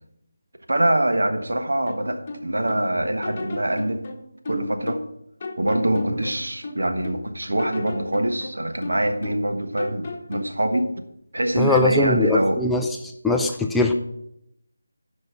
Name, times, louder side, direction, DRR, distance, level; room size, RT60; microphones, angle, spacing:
voice 1, 0.7-4.0 4.5-5.0 5.6-10.9 11.3-12.6, right 1 dB, 70° right, 1.4 m, -24 dB
sound 1, 1.9-2.9 3.2-5.1 5.4-7.2 7.6-9.5 9.8-10.6, left 2 dB, 30° left, 1.2 m, -35 dB
voice 2, 11.6-12.9 13.2-13.9, left 2 dB, 5° left, 0.4 m, -20 dB
12.0 x 5.2 x 5.9 m
figure-of-eight pair, 160°, 0 cm